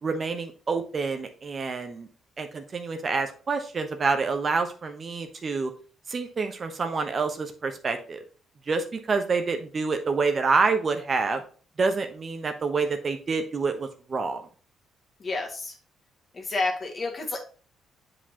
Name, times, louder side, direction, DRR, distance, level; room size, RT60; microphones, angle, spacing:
voice 1, 0.0-2.1 2.4-5.7 6.1-8.2 8.7-11.4 11.8-14.5, right 4 dB, 40° right, 6 dB, 1.0 m, -27 dB
voice 2, 15.2-15.7 16.4-17.4, left 3 dB, 40° left, 2 dB, 1.7 m, -29 dB
7.7 x 5.0 x 2.9 m, 0.39 s
cardioid pair, 90°, 0 cm